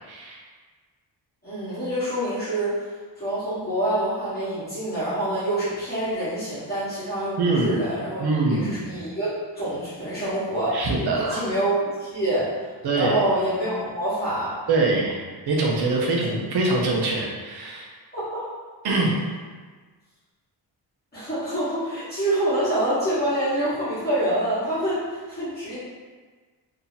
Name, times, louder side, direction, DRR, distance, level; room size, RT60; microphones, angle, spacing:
voice 1, 0.1-0.4 7.4-7.8 8.2-8.8 10.7-11.5 12.8-13.2 14.7-15.2 15.5-17.9 18.8-19.1, right 3 dB, 65° right, -2 dB, 0.8 m, -23 dB
voice 2, 1.4-2.9 3.2-8.2 8.5-10.9 11.2-14.6 18.1-18.5 21.1-25.8, right 1 dB, 20° left, -14 dB, 1.3 m, -26 dB
2.8 x 2.8 x 4.0 m, 1.5 s
wide cardioid pair, 180°, 43 cm